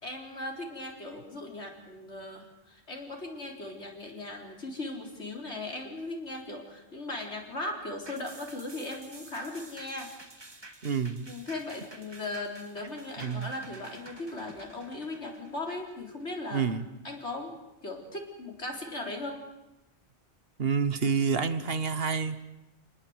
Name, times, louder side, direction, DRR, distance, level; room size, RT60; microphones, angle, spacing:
voice 1, 0.0-10.1 11.3-16.7 17.0-19.4, left 2 dB, 85° left, 1 dB, 4.3 m, -38 dB
sound 1, 8.1-16.8 17.2-17.3, right 2 dB, 25° right, 1.6 m, -50 dB
voice 2, 10.8-11.3 13.2-13.5 16.5-16.8 20.6-22.4, right 6 dB, 60° right, 11 dB, 1.4 m, -28 dB
26.5 x 19.5 x 8.0 m, 0.95 s
omnidirectional pair, 1.1 m